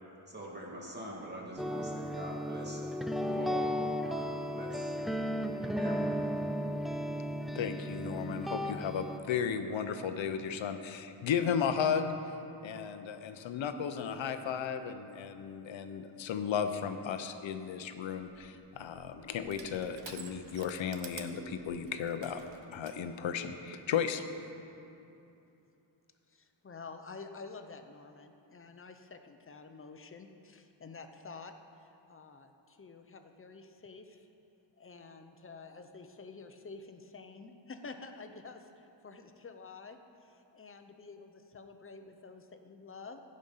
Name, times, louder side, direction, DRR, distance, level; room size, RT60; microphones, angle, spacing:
voice 1, 0.3-2.8 3.2-4.9 5.4-6.4, right 1 dB, 25° right, -3 dB, 2.2 m, -44 dB
sound 1, 1.6-9.2, equal, ahead, 0.3 m, -34 dB
voice 2, 7.5-12.2 12.6-22.4 22.7-24.2, left 7 dB, 85° left, 8 dB, 0.8 m, -34 dB
Crushing, 18.1-23.0, right 7 dB, 80° right, 0.9 m, -51 dB
voice 3, 26.3-31.5 31.8-34.3 34.8-43.2, left 4 dB, 30° left, 7 dB, 0.7 m, -49 dB
15.5 x 5.3 x 5.6 m, 2.7 s
wide cardioid pair, 105°, 45 cm